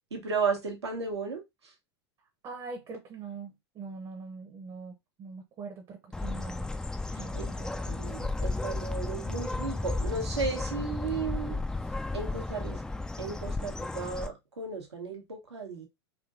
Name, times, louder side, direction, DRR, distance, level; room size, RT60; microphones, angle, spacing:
voice 1, 0.1-1.4 7.1-7.5 7.9-11.6 12.1-12.8 13.2-15.9, right 4 dB, 80° right, 1.2 m, -34 dB
voice 2, 2.4-6.7 7.2-7.9, right 4 dB, 35° right, 0.9 m, -43 dB
Bird, 6.1-14.3, left 2 dB, 5° left, 0.3 m, -34 dB
3.6 x 2.6 x 2.6 m
figure-of-eight pair, 90°, 14 cm